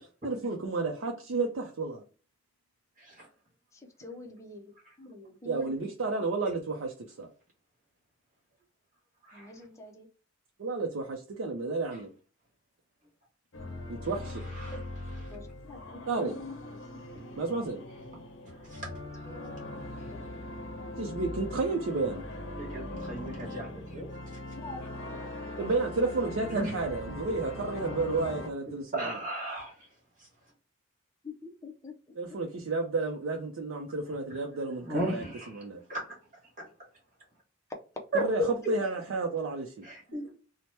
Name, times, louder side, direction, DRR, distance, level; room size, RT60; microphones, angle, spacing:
voice 1, 0.2-2.0 5.4-7.3 10.6-12.1 13.9-14.4 16.1-16.4 17.4-17.8 21.0-22.2 25.6-29.2 32.2-35.8 38.1-38.4 38.7-39.9, right 3 dB, 80° right, 1 dB, 0.5 m, -31 dB
voice 2, 3.7-4.6 5.0-5.9 9.3-10.1 14.7-14.8 15.3-15.8 16.2-16.5 19.3-19.6 20.8-20.9 24.6-24.8 26.0-26.3 31.2-31.9 32.3-32.4 40.1-40.3, left 2 dB, 15° left, 1 dB, 0.5 m, -45 dB
sound 1, 13.5-28.5, left 1 dB, 65° left, 0.6 m, -41 dB
voice 3, 18.4-18.8 22.6-24.1 26.5-26.7 28.9-29.9 34.8-35.6 35.9-36.0 38.1-38.2 39.8-40.3, right 1 dB, 40° right, -3 dB, 1.2 m, -35 dB
2.8 x 2.0 x 3.2 m, 0.37 s
head